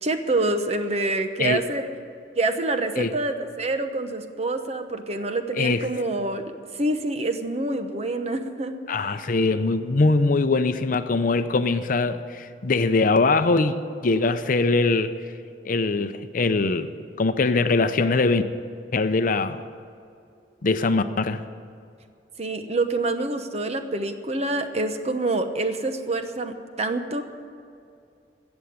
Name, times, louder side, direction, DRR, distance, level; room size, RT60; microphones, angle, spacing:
voice 1, 0.0-1.9 2.3-8.7 22.4-27.2, right 2 dB, 40° right, 7 dB, 1.0 m, -26 dB
voice 2, 5.6-5.9 8.9-15.1 15.6-16.9 17.2-18.4 18.9-19.6 20.6-21.4, left 3 dB, 50° left, 10 dB, 0.6 m, -22 dB
16.5 x 7.1 x 9.5 m, 2.4 s
head